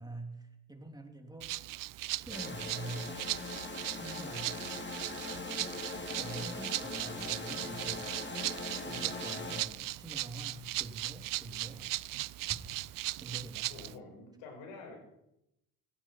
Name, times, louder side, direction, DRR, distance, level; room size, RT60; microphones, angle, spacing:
voice 1, 0.0-1.5 2.2-3.2 4.0-4.5 6.2-8.2 8.8-12.0 12.4-12.6 13.2-13.7, right 2 dB, 10° right, 3 dB, 3.3 m, -45 dB
Rattle (instrument), 1.4-13.9, right 17 dB, 45° right, 0.5 m, -38 dB
sound 1, 2.3-9.6, left 3 dB, 25° left, 2.7 m, -41 dB
voice 2, 4.2-4.7 13.7-15.0, left 3 dB, 80° left, 3 dB, 5.4 m, -50 dB
17.0 x 15.0 x 4.7 m, 0.84 s
hypercardioid pair, 65°, 46 cm